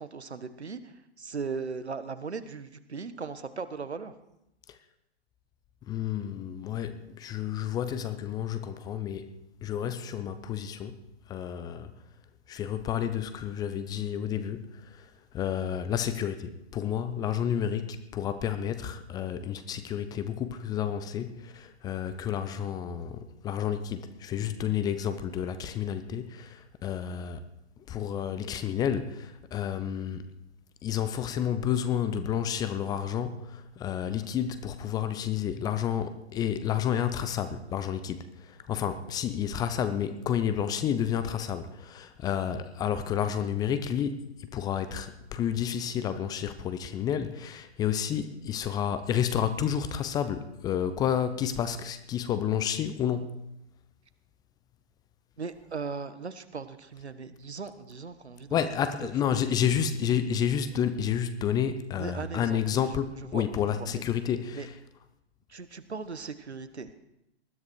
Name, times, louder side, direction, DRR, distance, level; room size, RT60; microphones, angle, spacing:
voice 1, 0.0-4.1 55.4-58.6 59.0-59.1 59.6-60.1 61.9-64.0 64.5-64.7 65.5-66.9, right 5 dB, 80° right, 1.4 m, -38 dB
voice 2, 5.9-9.4 9.6-11.0 11.3-11.9 12.5-27.4 27.9-30.3 30.8-44.2 44.5-53.4 58.5-64.7, left 9 dB, 10° left, 0.6 m, -30 dB
20.0 x 13.0 x 4.6 m
figure-of-eight pair, 120°, 33 cm